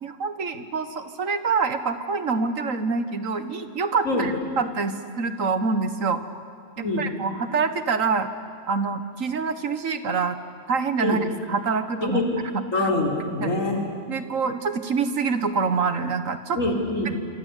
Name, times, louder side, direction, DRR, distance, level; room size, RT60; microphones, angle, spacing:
voice 1, 0.0-6.2 6.8-8.3 8.7-10.4 10.7-11.2 11.5-12.2 12.8-12.9 13.4-13.5 14.1-16.6 17.0-17.2, right 4 dB, 75° right, 10 dB, 1.9 m, -26 dB
voice 2, 12.7-13.8 16.6-17.1, left 2 dB, 75° left, 0 dB, 4.7 m, -24 dB
27.0 x 25.5 x 8.4 m, 2.4 s
omnidirectional pair, 1.4 m